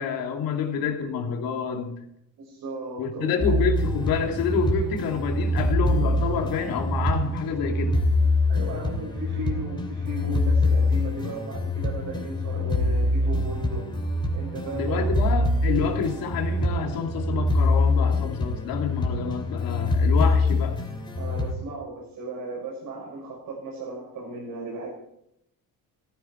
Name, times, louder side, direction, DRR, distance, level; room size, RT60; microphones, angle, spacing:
voice 1, 0.0-1.9 3.0-8.0 14.7-20.8, left 6 dB, 85° left, 3 dB, 2.8 m, -28 dB
voice 2, 2.4-3.6 8.5-13.9 14.3-15.1 21.2-24.9, right 2 dB, 75° right, -5 dB, 6.6 m, -36 dB
sound 1, 3.4-21.5, left 2 dB, 15° left, 2.7 m, -24 dB
16.0 x 14.5 x 4.5 m, 0.78 s
cardioid pair, 135°, 34 cm